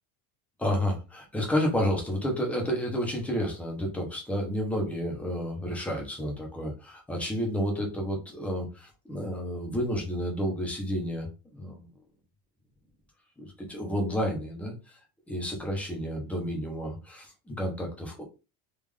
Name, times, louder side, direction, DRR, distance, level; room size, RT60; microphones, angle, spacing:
voice 1, 0.6-11.9 13.4-15.0 15.3-18.2, equal, 5° left, 0 dB, 0.6 m, -31 dB
3.6 x 2.4 x 3.2 m, 0.29 s
cardioid pair, 175°, 36 cm